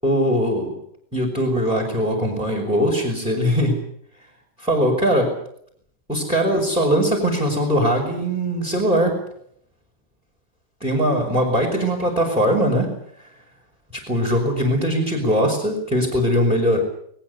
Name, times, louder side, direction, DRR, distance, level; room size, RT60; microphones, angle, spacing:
voice 1, 0.0-0.8 1.1-3.8 4.6-5.3 6.1-9.2 10.8-12.9 13.2-13.3 13.9-16.8, equal, ahead, 1 dB, 5.4 m, -20 dB
22.0 x 21.0 x 8.3 m, 0.68 s
omnidirectional pair, 5.0 m